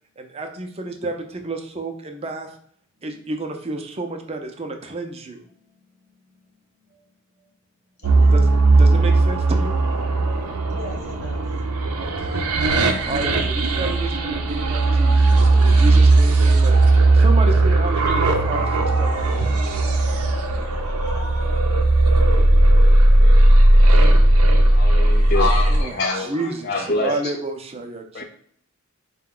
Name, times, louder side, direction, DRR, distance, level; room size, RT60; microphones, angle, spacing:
voice 1, 0.2-2.5 3.0-5.4 8.3-8.4 8.8-9.8 12.0-12.4 13.0-16.8 17.1-19.5 25.7-28.2, right 2 dB, 25° right, 5 dB, 0.4 m, -31 dB
voice 2, 8.0-8.5 10.7-11.4 16.4-16.5 17.7-18.2 20.5-20.7 21.1-21.9 25.3-26.9 27.2-27.3, left 3 dB, 65° left, -1 dB, 0.9 m, -31 dB
sound 1, 8.0-25.8, right 2 dB, 90° right, 0.6 m, -16 dB
voice 3, 24.7-27.2 28.1-28.2, left 2 dB, 45° left, 4 dB, 0.5 m, -27 dB
4.6 x 2.2 x 3.6 m, 0.63 s
head